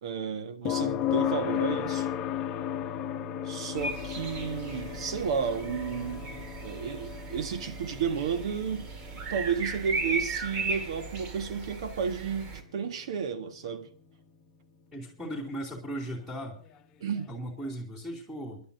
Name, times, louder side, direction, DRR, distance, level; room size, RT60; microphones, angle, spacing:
voice 1, 0.0-2.1 3.4-8.9 9.3-13.9 17.0-17.4, right 6 dB, 60° right, 1.6 m, -32 dB
sound 1, 0.7-14.5 16.7-16.8, left 10 dB, 25° left, 1.1 m, -36 dB
sound 2, 3.8-12.6, right 3 dB, 30° right, 1.9 m, -37 dB
voice 2, 14.9-16.6 17.3-18.7, right 1 dB, 10° right, 2.9 m, -37 dB
28.0 x 11.0 x 2.7 m
hypercardioid pair, 135°, 3 cm